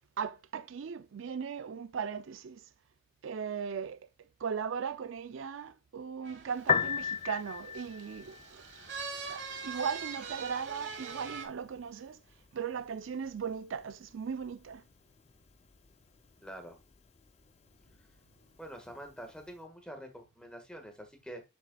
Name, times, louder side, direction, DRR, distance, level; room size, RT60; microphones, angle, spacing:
voice 1, 0.2-2.6 3.2-4.0 4.4-8.6 9.3-12.2 12.5-14.8, right 6 dB, 75° right, 0.4 m, -38 dB
sound 1, 6.2-11.5, right 5 dB, 60° right, 1.5 m, -43 dB
Piano, 6.5-19.6, left 6 dB, 30° left, 0.4 m, -40 dB
voice 2, 16.4-16.8 18.6-21.4, right 1 dB, 5° left, 1.5 m, -46 dB
7.3 x 6.8 x 2.3 m
head